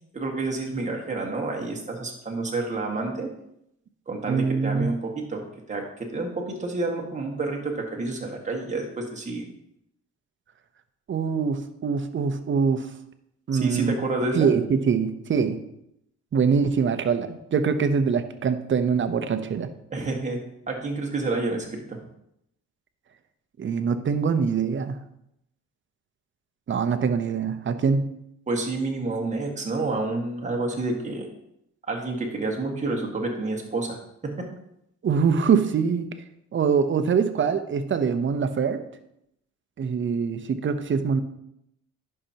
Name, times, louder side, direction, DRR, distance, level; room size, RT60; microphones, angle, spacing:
voice 1, 0.1-3.3 4.1-5.8 6.1-9.4 13.5-14.5 19.9-22.0 28.5-31.3 31.9-34.0 34.2-34.5, right 3 dB, 25° right, 0 dB, 1.7 m, -29 dB
voice 2, 4.3-4.9 11.1-12.9 13.5-14.0 14.3-15.6 16.3-19.7 23.6-25.0 26.7-28.1 35.0-36.1 36.5-38.8 39.8-41.2, right 6 dB, 40° right, 9 dB, 0.8 m, -23 dB
11.0 x 5.7 x 2.9 m, 0.78 s
cardioid pair, 90°, 30 cm